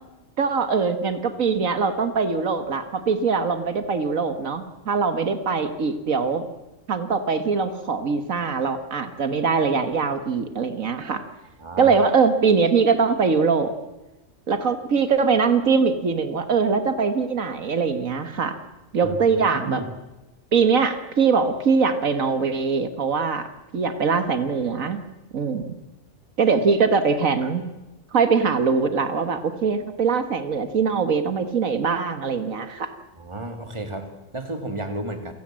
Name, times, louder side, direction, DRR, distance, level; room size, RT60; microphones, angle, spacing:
voice 1, 0.4-6.5 6.9-11.2 11.8-13.7 14.5-18.6 18.9-19.8 20.5-23.5 23.7-25.0 25.3-25.8 26.4-27.6 28.1-32.9, right 5 dB, 80° right, 9 dB, 1.9 m, -22 dB
voice 2, 11.6-12.0 19.0-19.9 27.4-27.5 33.2-35.3, right 2 dB, 20° right, 6 dB, 2.5 m, -33 dB
28.5 x 17.5 x 7.6 m, 1.0 s
omnidirectional pair, 1.4 m